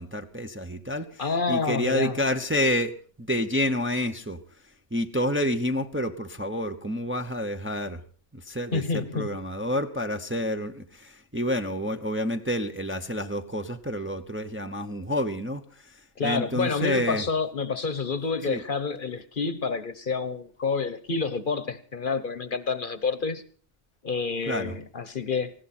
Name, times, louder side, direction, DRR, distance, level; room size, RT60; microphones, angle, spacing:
voice 1, 0.0-1.2 1.5-2.9 3.2-4.4 4.9-8.0 8.3-17.2 18.5-18.6 24.5-24.8, left 1 dB, 10° right, 0.8 m, -29 dB
voice 2, 1.2-2.2 8.7-9.3 16.2-23.4 24.0-25.5, left 4 dB, 45° left, 1.1 m, -28 dB
19.0 x 16.5 x 4.3 m
omnidirectional pair, 1.2 m